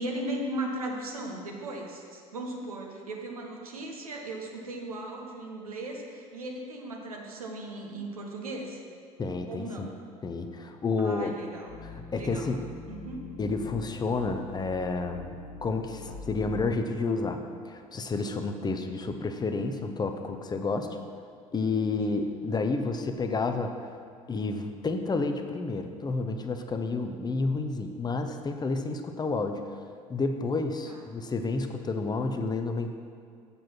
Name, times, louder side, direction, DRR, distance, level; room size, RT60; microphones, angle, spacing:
voice 1, 0.0-8.8 9.4-10.0 11.0-12.5 12.9-13.2 22.0-22.2 30.8-31.0, right 1 dB, 80° right, 0 dB, 1.2 m, -37 dB
voice 2, 9.2-9.9 10.2-11.3 11.9-12.6 13.4-20.9 21.5-23.9 24.3-29.6 30.1-32.9, left 3 dB, 20° left, 6 dB, 0.8 m, -30 dB
sound 1, 11.7-16.7, left 4 dB, 45° left, 1.3 m, -43 dB
7.6 x 7.0 x 5.9 m, 2.3 s
figure-of-eight pair, 65°, 18 cm